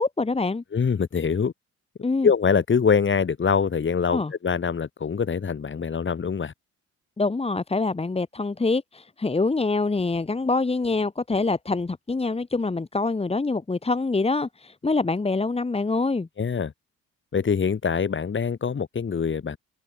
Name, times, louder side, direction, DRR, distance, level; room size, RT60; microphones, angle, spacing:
voice 1, 0.0-0.6 2.0-2.3 4.1-4.3 7.2-16.3, left 3 dB, 20° left, 1.8 m, -25 dB
voice 2, 0.7-1.5 2.2-6.5 16.4-16.7 17.3-19.6, left 6 dB, 40° left, 3.8 m, -24 dB
cardioid pair, 90°, 30 cm